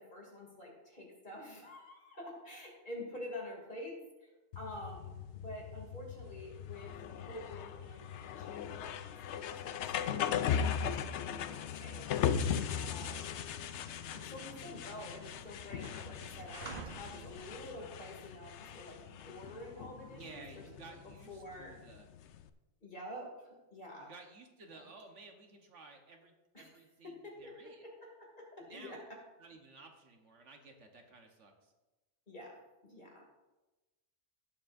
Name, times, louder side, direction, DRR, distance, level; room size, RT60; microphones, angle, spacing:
voice 1, 0.0-5.1 5.4-6.9 7.2-12.1 12.7-13.4 14.1-20.9 21.3-21.8 22.8-24.1 24.7-24.8 26.5-26.7 27.0-29.0 32.3-33.3, left 1 dB, 40° left, -2 dB, 2.7 m, -48 dB
sound 1, 4.5-22.5, left 8 dB, 75° left, 0.8 m, -39 dB
sound 2, 6.8-11.0 11.6-11.8 12.1-17.9, right 7 dB, 55° right, 0.5 m, -55 dB
voice 2, 13.1-13.5 20.2-22.1 24.0-27.8 28.6-29.0 29.4-31.7, right 3 dB, 75° right, 3 dB, 1.5 m, -55 dB
17.5 x 7.4 x 2.6 m, 1.1 s
omnidirectional pair, 1.2 m